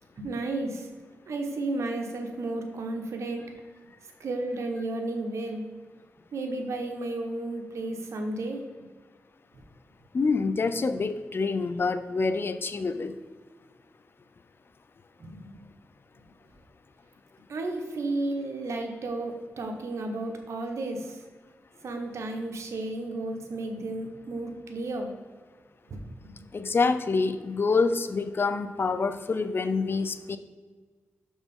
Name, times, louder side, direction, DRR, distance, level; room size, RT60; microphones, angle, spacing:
voice 1, 0.1-0.9 1.3-3.5 4.2-5.7 6.3-8.7 15.2-15.7 17.5-21.2 21.8-25.1 25.9-26.4, right 2 dB, 75° right, 4 dB, 1.2 m, -33 dB
voice 2, 10.1-13.1 26.5-30.4, left 4 dB, 50° left, 10 dB, 0.6 m, -26 dB
6.3 x 5.1 x 5.4 m, 1.5 s
cardioid pair, 65°, 5 cm